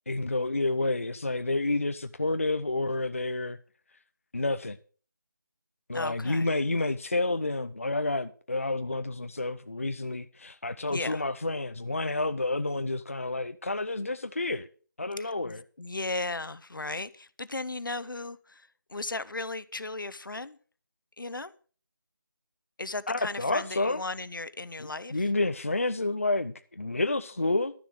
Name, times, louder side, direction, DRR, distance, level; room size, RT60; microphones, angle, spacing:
voice 1, 0.1-3.6 4.3-4.8 5.9-14.7 15.0-15.6 23.1-24.0 24.8-27.7, left 2 dB, 40° left, 0.4 m, -29 dB
voice 2, 5.9-6.5 10.9-11.2 15.2-20.6 21.2-21.5 22.8-25.2, left 3 dB, 70° left, 0.9 m, -36 dB
12.5 x 6.9 x 6.3 m
figure-of-eight pair, 175°, 11 cm